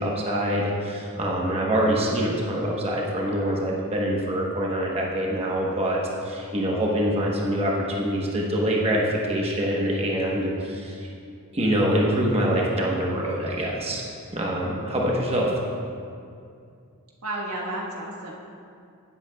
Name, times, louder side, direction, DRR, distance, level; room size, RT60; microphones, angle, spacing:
voice 1, 0.0-11.1 11.5-14.0 14.3-15.5, equal, 25° right, -3 dB, 1.0 m, -25 dB
voice 2, 17.2-18.3, right 1 dB, 90° right, -2 dB, 1.5 m, -32 dB
16.0 x 7.8 x 2.3 m, 2.4 s
head